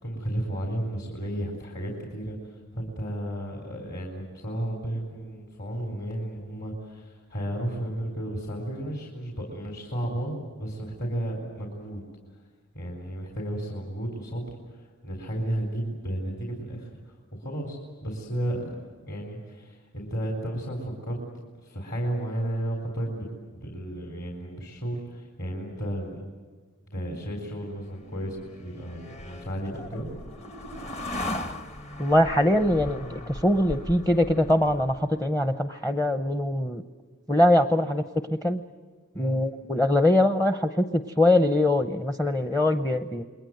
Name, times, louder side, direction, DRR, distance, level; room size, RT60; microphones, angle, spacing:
voice 1, 0.0-12.0 12.3-12.4 12.7-18.8 19.1-21.2 21.6-23.3 23.5-26.2 26.9-30.1 39.1-39.4, right 1 dB, 50° left, 0 dB, 4.0 m, -33 dB
sound 1, 27.8-35.2, left 1 dB, 30° left, 1.1 m, -38 dB
voice 2, 32.0-36.8 37.3-38.0 38.3-38.6 39.2-43.2, left 1 dB, 10° left, 8 dB, 0.7 m, -22 dB
28.5 x 21.5 x 7.8 m, 1.5 s
head